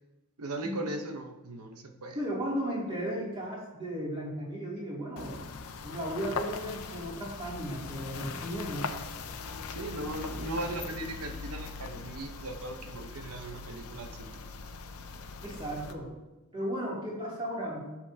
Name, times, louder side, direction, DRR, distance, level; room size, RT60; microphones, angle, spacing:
voice 1, 0.4-2.2 9.7-14.4, right 2 dB, 90° right, 5 dB, 1.0 m, -38 dB
voice 2, 2.1-8.9 15.4-16.1 16.5-17.9, equal, 25° right, -6 dB, 2.7 m, -35 dB
sound 1, 5.2-15.9, left 4 dB, 80° left, 0.7 m, -40 dB
12.0 x 7.0 x 2.8 m, 1.0 s
head